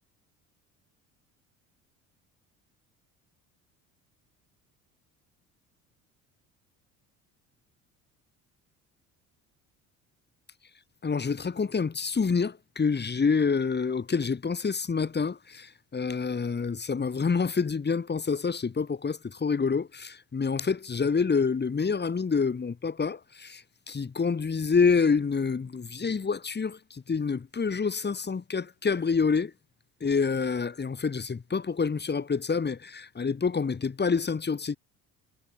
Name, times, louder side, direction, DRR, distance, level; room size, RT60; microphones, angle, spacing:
voice 1, 11.0-29.5 30.0-34.8, left 5 dB, 25° left, 2.6 m, -27 dB
hypercardioid pair, 60°, 40 cm